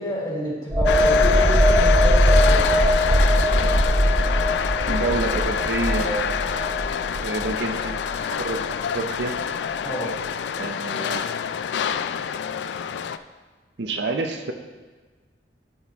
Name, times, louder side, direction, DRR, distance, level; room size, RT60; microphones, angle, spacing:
voice 1, 0.0-2.6 9.8-10.2, left 1 dB, 25° left, -6 dB, 2.4 m, -29 dB
sound 1, 0.7-8.2 8.5-8.7, equal, 10° right, 0.4 m, -20 dB
sound 2, 0.9-13.2, left 7 dB, 70° left, 0.3 m, -26 dB
voice 2, 4.9-6.6 7.1-8.0 8.4-9.3 10.6-11.3 13.8-14.5, right 2 dB, 70° right, 5 dB, 0.6 m, -28 dB
12.5 x 4.3 x 3.5 m, 1.4 s
head